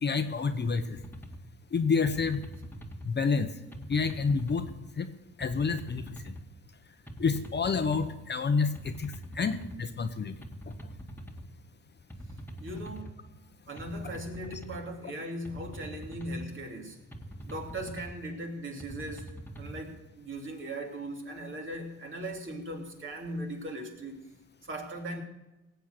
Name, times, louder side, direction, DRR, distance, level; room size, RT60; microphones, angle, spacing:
voice 1, 0.0-1.0 1.7-2.4 3.0-3.5 3.9-4.7 5.0-5.1 5.4-6.3 7.2-10.3 14.5-14.6, left 5 dB, 35° left, 8 dB, 1.0 m, -28 dB
sound 1, 1.0-1.4 2.1-3.1 3.7-4.8 5.4-6.4 7.1-8.1 8.8-9.8 10.4-11.5 12.1-13.1 13.8-14.8 15.4-16.5 17.1-18.2 18.8-19.8, right 1 dB, 5° left, 1.8 m, -43 dB
voice 2, 12.6-13.1 13.7-17.0 17.5-24.2 24.6-25.2, right 1 dB, 40° right, 1 dB, 3.0 m, -39 dB
18.0 x 8.1 x 6.7 m, 0.99 s
cardioid pair, 90°, 30 cm